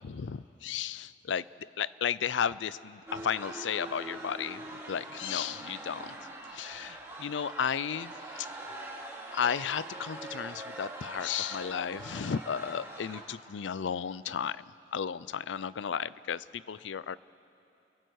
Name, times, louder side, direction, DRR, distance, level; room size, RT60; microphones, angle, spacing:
voice 1, 0.0-1.4 1.8-4.6 4.9-6.1 6.5-8.1 8.4-8.5 9.3-14.6 14.9-17.2, left 7 dB, 85° left, 18 dB, 0.4 m, -33 dB
sound 1, 3.1-13.2, right 2 dB, 15° right, 2.6 m, -43 dB
29.5 x 23.0 x 4.7 m, 2.9 s
head